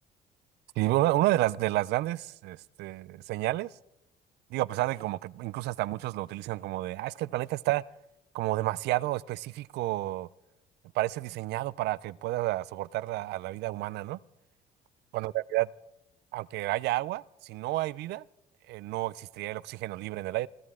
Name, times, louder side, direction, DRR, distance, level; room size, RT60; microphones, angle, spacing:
voice 1, 0.8-3.7 4.5-7.8 8.3-10.3 10.9-14.2 15.1-15.7 16.3-18.2 18.7-20.5, right 17 dB, 80° right, 0.5 m, -30 dB
25.5 x 15.0 x 3.7 m
cardioid pair, 110°, 17 cm